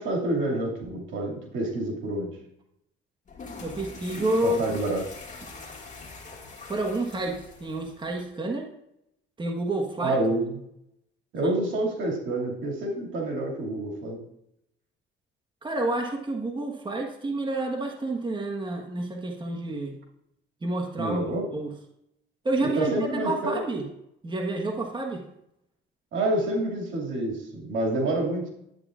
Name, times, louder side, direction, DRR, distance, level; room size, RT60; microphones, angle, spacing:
voice 1, 0.0-2.3 4.1-5.0 10.0-10.5 11.3-14.2 21.0-21.5 22.6-23.6 26.1-28.5, right 2 dB, 80° right, -1 dB, 2.3 m, -28 dB
sound 1, 3.3-8.3, left 3 dB, 40° left, 2.0 m, -43 dB
voice 2, 3.6-4.8 6.7-8.7 9.4-10.2 11.4-11.5 15.6-19.9 20.6-21.2 21.5-21.7 22.4-23.9 24.2-25.2, right 2 dB, 25° right, 1 dB, 1.3 m, -29 dB
10.5 x 8.6 x 2.5 m, 0.78 s
cardioid pair, 90°, 20 cm